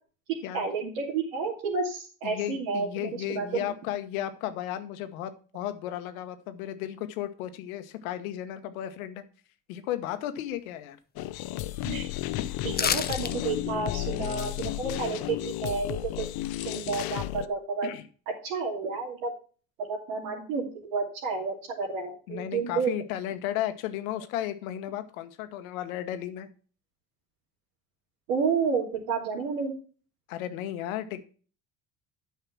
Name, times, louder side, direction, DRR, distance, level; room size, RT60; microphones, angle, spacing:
voice 1, 0.5-3.7 11.8-12.1 12.6-16.1 16.6-17.9 18.4-19.3 19.8-22.9 28.3-29.7, right 5 dB, 85° right, -6 dB, 3.1 m, -30 dB
voice 2, 2.2-9.2 9.7-11.0 12.3-12.6 17.8-18.1 22.3-26.5 30.3-31.2, left 12 dB, 85° left, 10 dB, 1.2 m, -34 dB
sound 1, 11.2-17.5, left 15 dB, 65° left, 0.8 m, -33 dB
sound 2, 12.7-13.3 13.7-13.8, left 7 dB, 25° left, 0.7 m, -28 dB
9.3 x 5.7 x 6.0 m, 0.39 s
hypercardioid pair, 70°, 40 cm